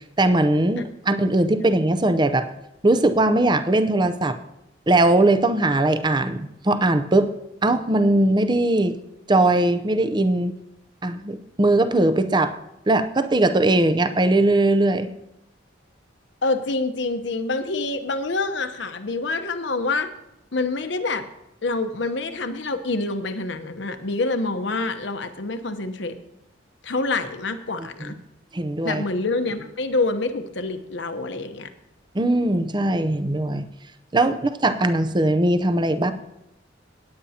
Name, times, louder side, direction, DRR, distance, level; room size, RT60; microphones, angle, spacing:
voice 1, 0.2-2.5 2.8-4.4 4.9-7.3 7.6-9.0 9.3-10.5 11.0-12.5 12.9-15.1 27.8-28.2 28.5-29.0 32.1-33.7 34.1-36.1, right 2 dB, 25° right, 10 dB, 0.5 m, -20 dB
voice 2, 16.4-20.1 20.5-21.3 21.6-26.2 26.8-28.1 28.8-31.7, left 3 dB, 65° left, 8 dB, 0.9 m, -26 dB
18.0 x 9.0 x 2.8 m, 0.86 s
head